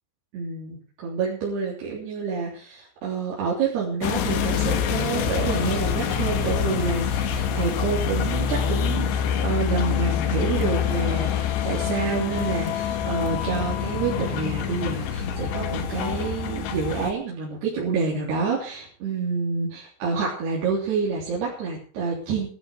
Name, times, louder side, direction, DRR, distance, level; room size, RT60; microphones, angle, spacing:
voice 1, 0.3-22.5, right 5 dB, 65° right, -6 dB, 5.4 m, -28 dB
sound 1, 4.0-17.1, left 8 dB, 75° left, 3.6 m, -26 dB
17.5 x 12.5 x 4.9 m, 0.43 s
omnidirectional pair, 5.0 m